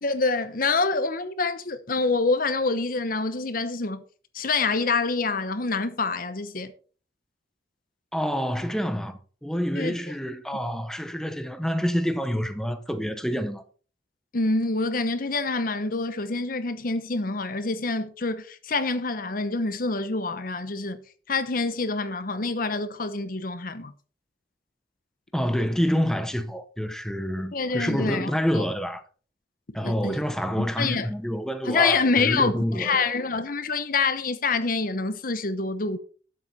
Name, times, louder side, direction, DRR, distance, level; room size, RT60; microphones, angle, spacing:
voice 1, 0.0-4.0 4.3-6.7 9.7-9.9 14.3-21.0 21.3-23.9 27.5-28.6 29.8-30.2 30.6-31.1 31.6-36.0, left 3 dB, 55° left, 0.9 m, -26 dB
voice 2, 8.1-13.6 25.3-29.0 29.7-33.1, equal, 5° left, 0.8 m, -27 dB
12.0 x 7.8 x 4.2 m
head